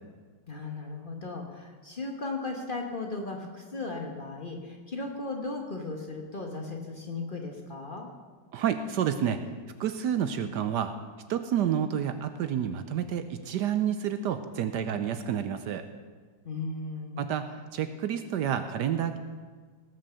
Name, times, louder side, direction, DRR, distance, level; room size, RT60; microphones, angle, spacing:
voice 1, 0.5-8.1 16.4-17.2, left 3 dB, 30° left, 2 dB, 1.2 m, -36 dB
voice 2, 8.5-9.4 9.8-10.9 11.3-15.9 17.2-19.2, right 9 dB, 70° right, 10 dB, 1.2 m, -29 dB
18.0 x 6.3 x 6.9 m, 1.5 s
omnidirectional pair, 2.1 m